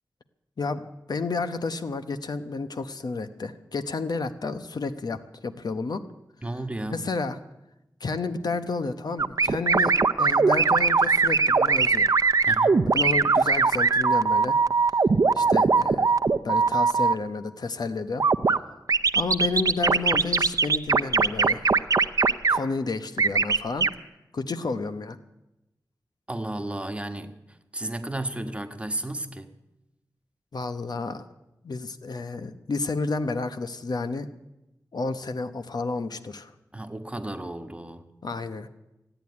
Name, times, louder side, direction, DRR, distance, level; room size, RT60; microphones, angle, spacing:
voice 1, 0.6-6.0 6.9-7.4 8.0-9.9 10.2-12.1 12.9-14.6 15.3-16.1 16.4-18.2 19.1-21.7 22.5-23.9 24.3-25.2 30.5-31.2 31.6-34.3 34.9-36.5 38.2-38.7, left 3 dB, 75° left, 0.9 m, -31 dB
voice 2, 6.4-7.1 12.5-12.9 26.3-29.5 36.7-38.1, right 1 dB, 15° right, 1.4 m, -33 dB
sound 1, 9.2-17.1 18.2-18.6 18.9-22.6 23.2-23.9, right 4 dB, 55° right, 0.6 m, -20 dB
16.0 x 9.1 x 9.6 m
wide cardioid pair, 65°, 7 cm